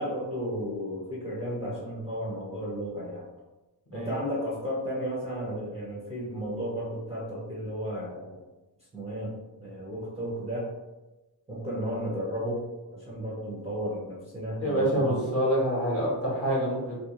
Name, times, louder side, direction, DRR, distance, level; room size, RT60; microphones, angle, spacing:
voice 1, 0.0-3.2 3.9-8.4 8.9-9.3 9.6-10.7 11.5-12.6 12.9-15.3, equal, 15° right, -7 dB, 0.5 m, -33 dB
voice 2, 14.6-17.0, equal, 35° left, -5 dB, 0.9 m, -26 dB
2.5 x 2.2 x 2.9 m, 1.1 s
wide cardioid pair, 175°, 42 cm